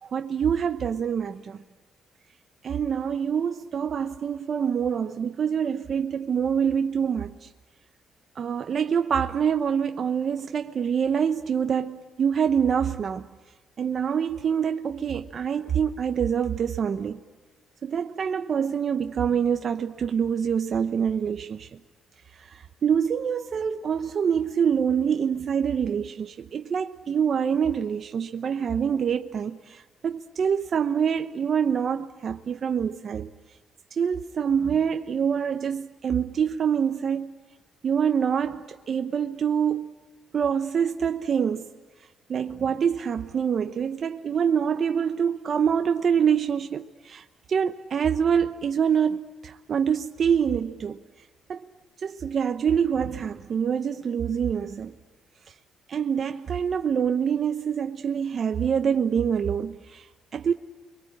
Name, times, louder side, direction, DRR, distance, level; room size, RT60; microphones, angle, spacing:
voice 1, 0.0-1.6 2.6-7.5 8.4-13.3 13.8-17.2 17.8-21.7 22.3-33.3 34.0-37.3 37.8-39.9 40.3-41.7 42.3-51.0 51.5-51.7 52.0-54.9 55.9-60.1 60.3-60.5, right 7 dB, 50° right, 0.9 m, -25 dB
29.5 x 23.0 x 8.6 m
cardioid pair, 90°, 0 cm